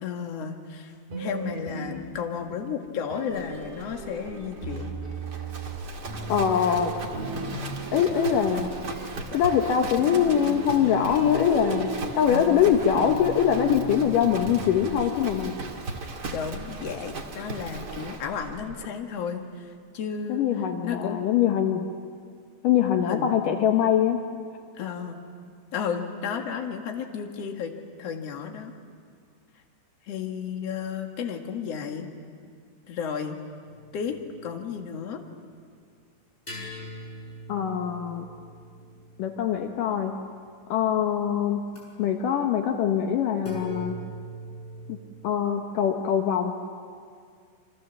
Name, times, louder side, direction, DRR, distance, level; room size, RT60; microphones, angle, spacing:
voice 1, 0.0-4.9 16.3-20.4 20.8-21.2 23.0-23.3 24.7-25.2 25.7-27.7 28.0-28.7 30.0-32.1 32.9-33.4 33.9-34.2 34.4-35.2, left 7 dB, 55° left, 3 dB, 1.8 m, -33 dB
sound 1, 1.1-2.6 3.1-15.3, right 2 dB, 40° right, 5.2 m, -37 dB
Livestock farm animals working animals, 3.3-18.9, right 3 dB, 90° right, 0.9 m, -38 dB
voice 2, 6.3-6.9 7.9-8.7 9.3-11.9 12.2-15.6 20.3-21.9 22.6-24.2 37.5-38.2 39.2-40.2 40.7-41.6 42.0-44.0 44.9-45.0 45.2-46.5, left 8 dB, 85° left, 4 dB, 1.9 m, -23 dB
sound 2, 33.7-34.8 36.5-40.2 41.7-41.8 43.4-45.0, equal, 10° left, 7.5 m, -42 dB
29.5 x 25.5 x 7.3 m, 2.1 s
omnidirectional pair, 5.5 m